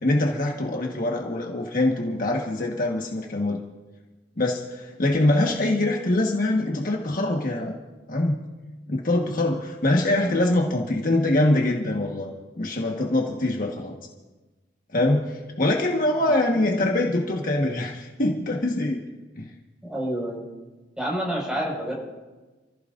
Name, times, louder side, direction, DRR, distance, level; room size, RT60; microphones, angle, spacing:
voice 1, 0.0-3.6 4.4-7.7 8.1-8.4 8.9-12.3 12.6-13.9 14.9-19.0 19.4-19.5, left 1 dB, 50° left, 0 dB, 1.5 m, -24 dB
voice 2, 16.3-16.8 19.8-20.4 21.0-21.9, right 1 dB, 5° right, -3 dB, 5.3 m, -29 dB
28.5 x 15.5 x 2.6 m, 1.2 s
head